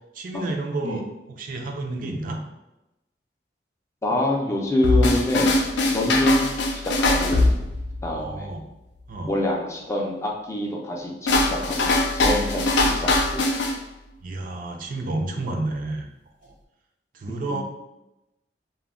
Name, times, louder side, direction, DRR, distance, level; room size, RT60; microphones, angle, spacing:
voice 1, 0.1-1.1 1.4-2.4 6.1-6.2 8.1-8.6 9.1-9.3 14.2-16.1 16.4-16.5 17.1-17.6, right 2 dB, 50° right, 2 dB, 0.4 m, -30 dB
voice 2, 4.0-5.5 5.9-7.5 8.0-8.5 9.3-13.4, left 1 dB, 15° left, -1 dB, 0.4 m, -26 dB
sound 1, 4.8-8.3 11.3-13.8, left 2 dB, 80° left, 0.4 m, -22 dB
2.2 x 2.0 x 3.5 m, 0.94 s
head